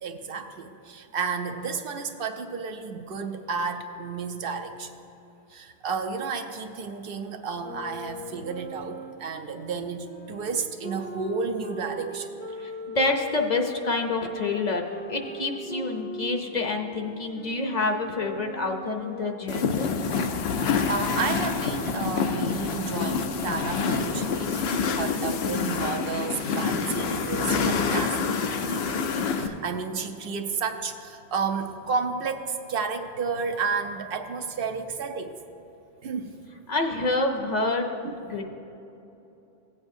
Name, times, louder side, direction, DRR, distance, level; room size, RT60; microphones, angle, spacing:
voice 1, 0.0-5.0 5.5-12.4 20.6-28.2 28.5-28.9 29.2-35.4 36.0-36.4 38.0-38.4, right 5 dB, 65° right, 6 dB, 0.7 m, -32 dB
sound 1, 7.6-13.4 14.1-19.7, equal, 15° left, 0.4 m, -40 dB
voice 2, 12.6-14.8 15.1-19.9 36.7-37.9 38.3-38.4, left 3 dB, 45° left, 3 dB, 0.7 m, -27 dB
sound 2, 19.5-29.5, left 5 dB, 80° left, 0.9 m, -27 dB
16.0 x 8.5 x 2.6 m, 3.0 s
omnidirectional pair, 1.1 m